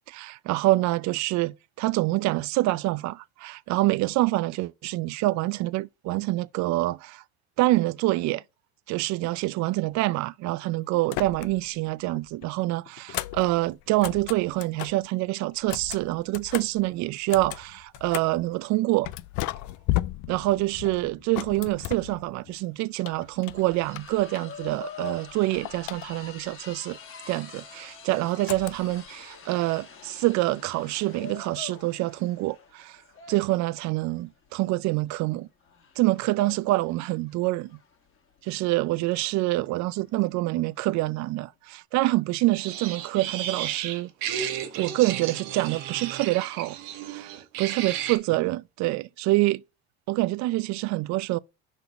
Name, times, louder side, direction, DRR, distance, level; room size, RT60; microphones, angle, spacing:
voice 1, 0.1-7.2 7.6-8.4 8.9-19.1 20.3-27.0 27.3-33.0 33.3-35.5 36.0-37.8 38.4-44.1 44.8-46.8 47.1-49.6 50.1-51.4, right 19 dB, 55° right, 0.4 m, -26 dB
sound 1, 11.0-11.8 12.1-15.1 15.6-18.5 19.0-22.6 23.0-24.8 25.1-26.5 28.5-29.1, left 17 dB, 60° left, 0.5 m, -35 dB
sound 2, 22.1-22.2 22.5-41.3, left 6 dB, 35° left, 1.7 m, -46 dB
sound 3, 42.5-48.2, right 10 dB, 70° right, 1.1 m, -33 dB
5.1 x 4.1 x 5.7 m
supercardioid pair, 100°, 35 cm